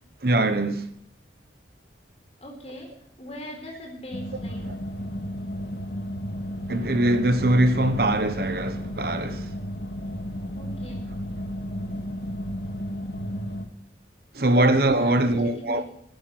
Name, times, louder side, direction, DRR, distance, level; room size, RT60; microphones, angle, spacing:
voice 1, 0.2-0.9 6.7-9.5 14.3-15.8, right 1 dB, 60° right, 1.2 m, -22 dB
voice 2, 2.4-2.9 3.2-4.7 10.5-11.1 14.4-14.7 15.0-15.8, equal, 35° left, 4.2 m, -40 dB
sound 1, 4.1-13.6, equal, 65° left, 2.2 m, -33 dB
11.0 x 10.0 x 9.4 m
head